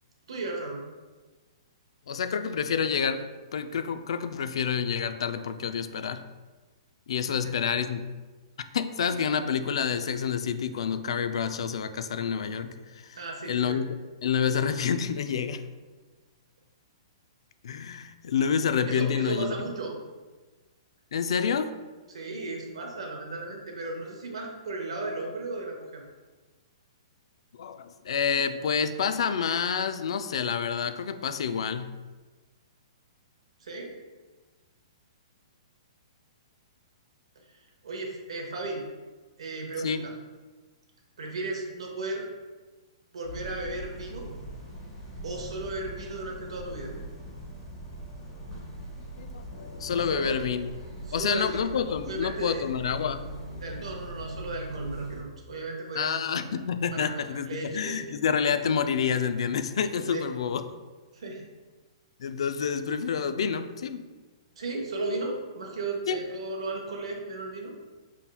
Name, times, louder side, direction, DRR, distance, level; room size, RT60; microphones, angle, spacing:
voice 1, 0.3-0.8 7.3-7.5 13.1-13.8 18.9-20.0 22.1-26.0 33.6-33.9 37.4-38.9 39.4-40.1 41.2-42.3 43.1-44.3 45.2-46.9 50.0-50.3 51.1-51.6 52.1-52.7 53.6-56.5 56.8-58.0 60.1-60.2 61.1-61.4 64.6-67.7, right 2 dB, 85° right, 1 dB, 1.0 m, -35 dB
voice 2, 2.1-3.3 3.5-6.2 7.1-8.1 8.7-12.7 13.1-13.2 13.5-13.9 14.2-15.6 17.6-19.5 21.1-21.7 27.6-32.0 39.8-40.0 49.2-49.4 49.8-50.7 51.1-53.2 56.0-60.6 62.2-64.1 66.1-66.2, left 7 dB, 70° left, 10 dB, 0.4 m, -28 dB
sound 1, 43.2-55.2, right 1 dB, 20° left, 1.2 m, -41 dB
5.8 x 3.6 x 2.2 m, 1.3 s
hypercardioid pair, 160°, 3 cm